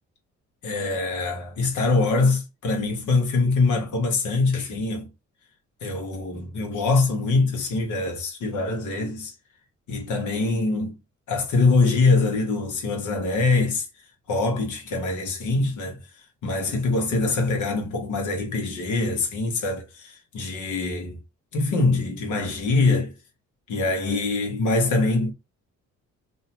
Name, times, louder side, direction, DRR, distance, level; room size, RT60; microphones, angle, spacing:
voice 1, 0.6-5.1 5.8-9.3 9.9-11.0 11.3-13.9 14.3-16.0 16.4-21.2 21.5-23.1 23.7-25.3, left 3 dB, 75° left, 1.1 m, -23 dB
2.7 x 2.2 x 2.8 m
cardioid pair, 90°, 30 cm